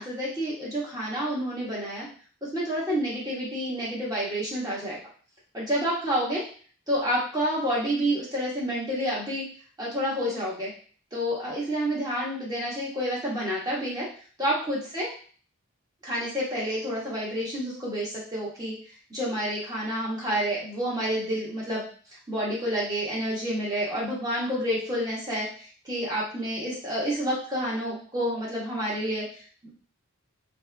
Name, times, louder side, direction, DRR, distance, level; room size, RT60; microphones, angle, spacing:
voice 1, 0.0-2.1 2.4-5.0 5.5-6.4 6.9-9.4 9.8-10.7 11.1-14.1 14.4-15.1 16.0-18.7 19.1-21.8 22.3-29.7, equal, 15° right, -6 dB, 1.6 m, -29 dB
3.5 x 3.4 x 3.5 m, 0.43 s
head